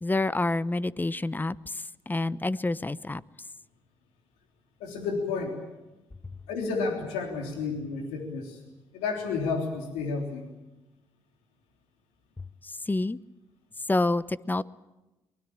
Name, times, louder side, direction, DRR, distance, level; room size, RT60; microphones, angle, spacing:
voice 1, 0.0-3.2 12.6-13.2 13.9-14.6, left 2 dB, 15° left, 18 dB, 0.8 m, -28 dB
voice 2, 4.8-5.6 6.5-8.6 8.9-10.5, left 4 dB, 90° left, 2 dB, 3.5 m, -31 dB
23.5 x 20.5 x 8.7 m, 1.0 s
supercardioid pair, 60°, 11 cm